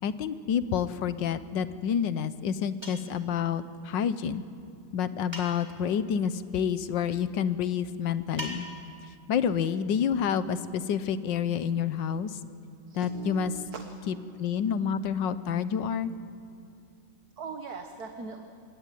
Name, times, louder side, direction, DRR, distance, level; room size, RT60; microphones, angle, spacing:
voice 1, 0.0-4.4 4.9-8.7 9.3-12.3 12.9-13.5 14.1-16.1, left 8 dB, 90° left, 13 dB, 1.6 m, -28 dB
sound 1, 2.8-3.2 5.3-5.9 8.4-9.0, equal, 15° right, 3.6 m, -40 dB
voice 2, 12.9-13.8 14.1-14.3 17.4-18.4, right 5 dB, 60° right, 5 dB, 1.8 m, -39 dB
26.5 x 21.5 x 9.2 m, 2.4 s
omnidirectional pair, 1.9 m